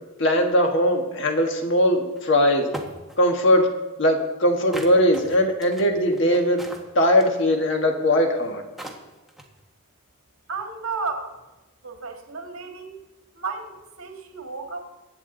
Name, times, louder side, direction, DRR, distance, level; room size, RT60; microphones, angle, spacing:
voice 1, 0.2-2.7 3.2-3.7 4.0-6.6 6.9-8.6, equal, 55° left, 3 dB, 1.5 m, -20 dB
sound 1, 2.2-2.3 2.7-3.2 4.7-7.4 8.4-8.5 8.8-9.6, right 1 dB, ahead, 1.3 m, -37 dB
voice 2, 10.5-11.4 11.8-13.1 13.3-14.8, right 4 dB, 70° right, 3 dB, 1.9 m, -33 dB
24.0 x 8.9 x 3.9 m, 1.1 s
head